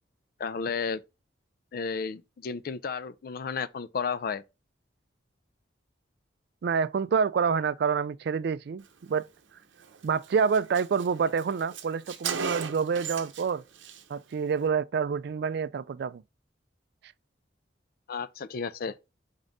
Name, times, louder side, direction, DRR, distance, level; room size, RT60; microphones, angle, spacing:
voice 1, 0.4-1.0 1.7-4.4 18.1-19.0, left 5 dB, 50° left, 0.4 m, -33 dB
voice 2, 6.6-9.2 10.0-13.6 14.1-16.2, right 6 dB, 60° right, 0.3 m, -27 dB
Car, 9.8-10.0 10.2-10.3 10.5-13.5 13.8-14.0, right 6 dB, 85° right, 0.7 m, -36 dB
5.2 x 3.7 x 2.6 m
head